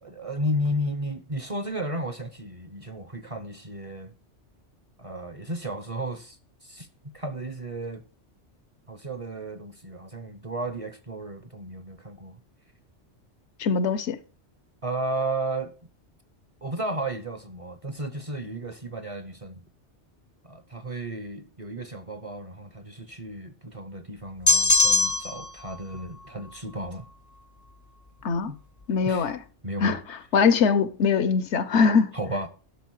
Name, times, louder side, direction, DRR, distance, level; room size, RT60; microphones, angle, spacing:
voice 1, 0.0-4.1 5.0-8.0 8.9-12.4 14.8-15.7 16.6-19.6 20.4-27.1 28.5-28.6 29.0-29.3 29.6-30.0 32.1-32.5, right 1 dB, 35° right, 0.7 m, -33 dB
voice 2, 13.6-14.2 28.2-28.5 28.9-29.4 29.8-30.0 30.3-32.1, left 5 dB, 70° left, 1.0 m, -22 dB
sound 1, 24.5-25.5, left 3 dB, 20° left, 0.5 m, -20 dB
11.5 x 6.1 x 4.6 m
omnidirectional pair, 1.2 m